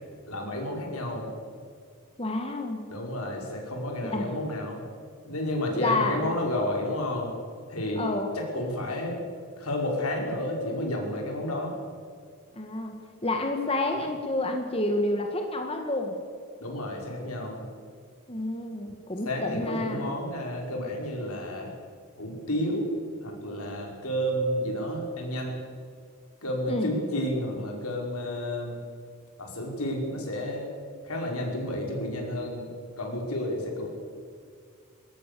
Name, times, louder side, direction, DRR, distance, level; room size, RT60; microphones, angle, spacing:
voice 1, 0.2-1.3 2.9-4.8 5.3-7.3 7.7-8.0 8.3-9.2 9.6-11.7 16.6-17.6 19.2-21.7 22.2-22.9 23.2-25.6 26.4-28.8 29.4-30.7 31.0-32.7 33.0-33.9, left 1 dB, 80° left, 1 dB, 5.4 m, -31 dB
voice 2, 2.2-2.8 4.0-4.3 5.8-6.3 8.0-8.3 12.5-12.9 13.2-16.2 18.3-20.1 26.7-26.9, left 2 dB, 25° left, 3 dB, 1.8 m, -29 dB
22.0 x 18.0 x 7.0 m, 2.1 s
head